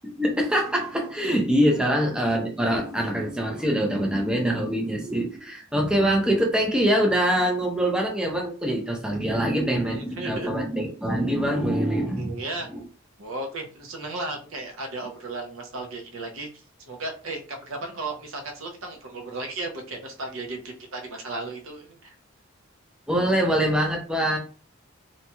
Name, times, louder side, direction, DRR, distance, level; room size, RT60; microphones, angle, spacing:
voice 1, 0.0-12.4 12.7-12.8 23.1-24.4, equal, 5° right, 0 dB, 0.4 m, -24 dB
voice 2, 1.3-1.8 9.9-10.5 12.1-12.7 13.2-16.5 16.9-22.1, right 2 dB, 80° right, 3 dB, 0.7 m, -35 dB
2.8 x 2.7 x 2.2 m, 0.39 s
head